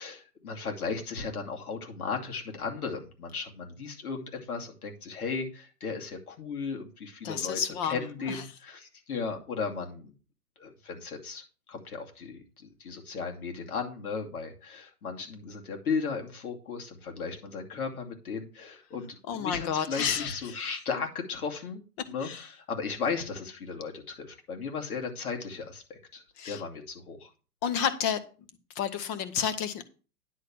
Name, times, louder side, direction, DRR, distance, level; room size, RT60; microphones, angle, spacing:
voice 1, 0.0-10.1 10.6-27.3, left 5 dB, 65° left, 2.7 m, -36 dB
voice 2, 7.2-8.0 8.3-8.4 19.3-20.6 22.2-22.5 26.4-26.6 27.6-28.2 28.7-29.8, left 8 dB, 20° left, 0.8 m, -30 dB
10.0 x 4.1 x 7.6 m
hypercardioid pair, 135°, 47 cm